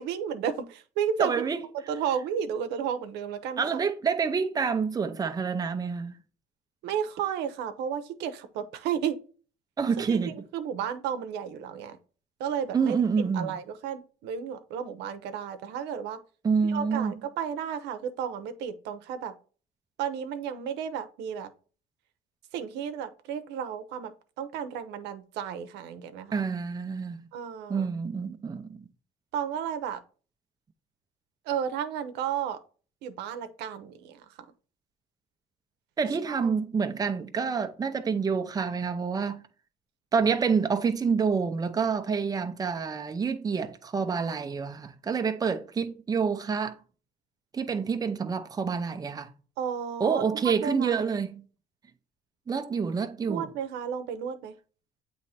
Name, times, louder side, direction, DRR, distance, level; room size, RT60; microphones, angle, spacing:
voice 1, 0.0-1.3 1.9-3.6 6.8-9.2 10.1-10.2 10.5-12.0 12.4-13.0 13.3-16.2 16.6-19.3 20.0-21.5 22.5-24.1 24.4-26.4 27.3-27.9 29.3-30.0 31.5-32.6 33.0-34.2 36.4-36.5 49.6-50.2 50.6-50.9 53.3-54.5, right 8 dB, 85° right, 0.8 m, -32 dB
voice 2, 1.2-1.7 3.6-6.2 9.8-10.4 12.7-13.6 16.4-17.2 26.3-27.2 27.7-28.8 36.0-39.4 40.1-46.8 47.5-49.3 50.0-51.4 52.5-53.5, right 5 dB, 20° right, 0.6 m, -28 dB
7.8 x 3.1 x 4.2 m
cardioid pair, 110°, 17 cm